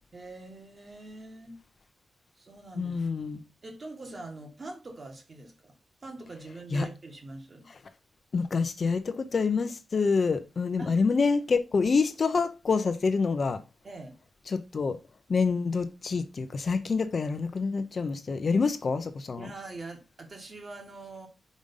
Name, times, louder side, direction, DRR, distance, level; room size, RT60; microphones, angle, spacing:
voice 1, 0.1-1.6 2.4-3.0 3.6-5.7 6.0-7.7 10.8-11.0 13.8-14.2 19.4-21.3, right 2 dB, 35° right, 1.7 m, -43 dB
voice 2, 2.8-3.4 6.7-6.9 8.3-13.6 14.5-15.0 15.3-19.5, left 4 dB, 45° left, 0.6 m, -27 dB
5.2 x 5.1 x 5.4 m
wide cardioid pair, 135°, 0 cm